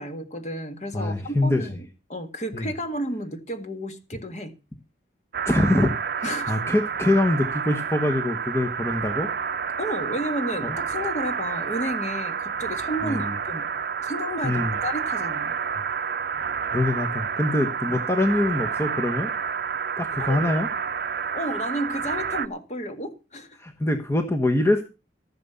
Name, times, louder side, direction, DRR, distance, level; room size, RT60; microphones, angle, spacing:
voice 1, 0.0-4.5 6.2-6.6 9.8-13.7 14.0-15.6 17.9-18.0 20.2-20.4 21.3-23.6, equal, 35° left, 1.9 m, -32 dB
voice 2, 0.9-1.7 2.5-2.7 5.4-9.3 10.6-10.8 13.0-13.4 14.4-14.8 16.7-19.3 20.0-20.7 23.6-24.8, left 1 dB, 15° left, 1.2 m, -24 dB
sound 1, 5.3-22.5, right 6 dB, 50° right, 0.6 m, -29 dB
15.0 x 6.8 x 7.0 m
head